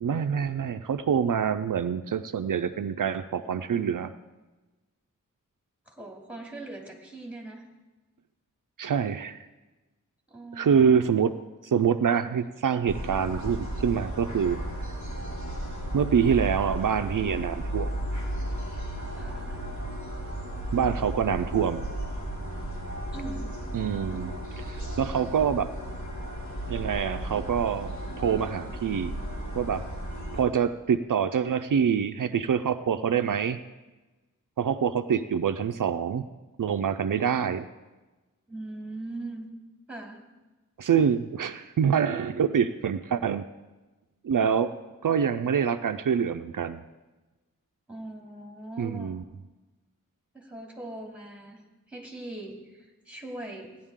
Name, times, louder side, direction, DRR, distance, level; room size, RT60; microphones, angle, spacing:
voice 1, 0.0-4.1 8.8-9.4 10.5-11.3 11.7-14.6 15.9-17.9 20.7-21.9 23.7-25.7 26.7-29.1 29.6-29.8 30.3-33.6 34.6-36.2 36.6-37.6 40.8-43.4 44.2-44.7 45.0-46.8 48.8-49.2, right 7 dB, 75° right, 10 dB, 0.5 m, -26 dB
voice 2, 5.9-7.7 10.3-11.3 19.2-19.7 23.1-23.5 38.5-39.5 39.9-40.2 47.9-49.2 50.3-51.6 51.9-53.8, right 2 dB, 5° right, 0 dB, 2.7 m, -41 dB
sound 1, 12.9-30.4, right 1 dB, 60° left, 3.0 m, -34 dB
16.5 x 10.5 x 3.7 m, 1.2 s
wide cardioid pair, 60°, 32 cm